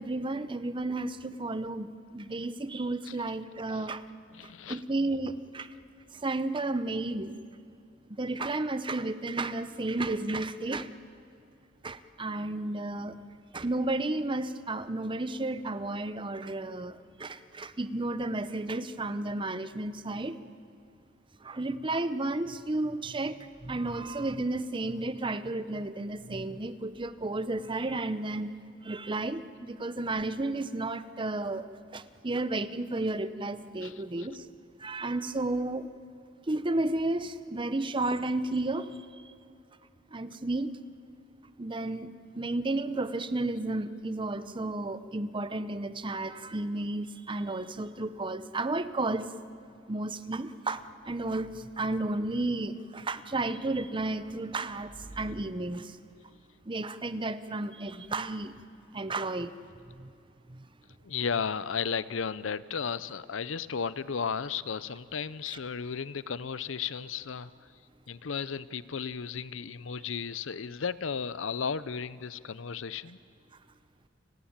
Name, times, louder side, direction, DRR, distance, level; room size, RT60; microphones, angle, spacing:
voice 1, 0.0-1.9 2.1-4.0 4.7-5.7 6.2-7.4 8.2-10.9 11.8-13.2 13.5-20.4 21.4-28.5 28.8-31.7 31.9-34.4 34.8-35.9 36.5-38.9 40.1-40.7 41.6-49.3 49.9-55.9 56.7-58.5 58.9-59.5 60.0-60.1 60.5-60.6, right 2 dB, 25° right, 13 dB, 0.8 m, -32 dB
voice 2, 4.3-4.8 33.8-34.3 61.0-67.7 68.1-73.2, left 6 dB, 80° left, 17 dB, 0.6 m, -34 dB
29.5 x 19.0 x 8.8 m, 2.5 s
head